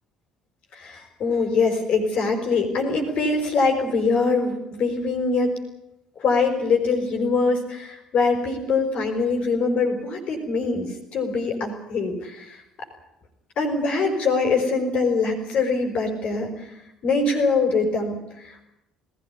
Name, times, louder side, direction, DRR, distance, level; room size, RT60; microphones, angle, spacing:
voice 1, 0.7-5.5 6.2-12.6 13.6-16.7 17.0-18.7, left 4 dB, 50° left, 4 dB, 5.5 m, -23 dB
20.5 x 17.0 x 9.9 m, 0.84 s
figure-of-eight pair, 55°, 3 cm